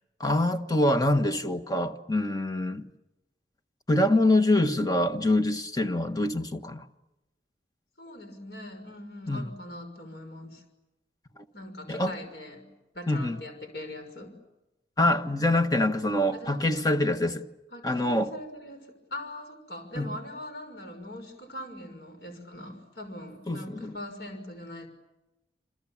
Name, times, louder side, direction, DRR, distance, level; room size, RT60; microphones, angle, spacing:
voice 1, 0.2-2.9 3.9-6.8 9.3-9.5 11.9-12.1 13.1-13.4 15.0-17.4 17.8-18.3 20.0-20.1 23.5-23.9, left 1 dB, 20° left, 1.5 m, -25 dB
voice 2, 8.0-10.6 11.5-12.7 12.9-14.3 16.3-16.9 17.7-24.9, left 1 dB, 65° left, 5.9 m, -41 dB
28.5 x 27.5 x 7.4 m
head